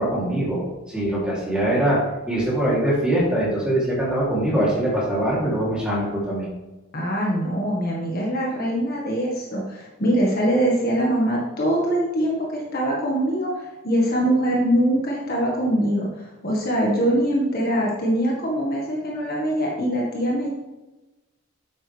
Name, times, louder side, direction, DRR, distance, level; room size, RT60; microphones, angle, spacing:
voice 1, 0.0-2.0 2.3-6.5, right 1 dB, 5° right, -7 dB, 3.1 m, -22 dB
voice 2, 6.9-20.5, equal, 45° left, -3 dB, 1.7 m, -23 dB
10.5 x 8.0 x 3.4 m, 1.1 s
head